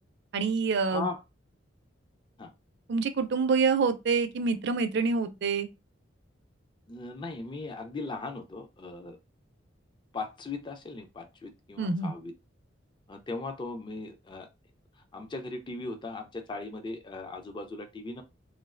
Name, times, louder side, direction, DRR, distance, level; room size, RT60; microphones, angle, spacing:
voice 1, 0.3-1.1 2.9-5.7 11.8-12.1, right 4 dB, 60° right, 0.4 m, -26 dB
voice 2, 6.9-9.2 10.1-12.3 13.1-14.5 15.1-18.2, left 3 dB, 25° left, 0.4 m, -38 dB
3.1 x 2.3 x 2.4 m
head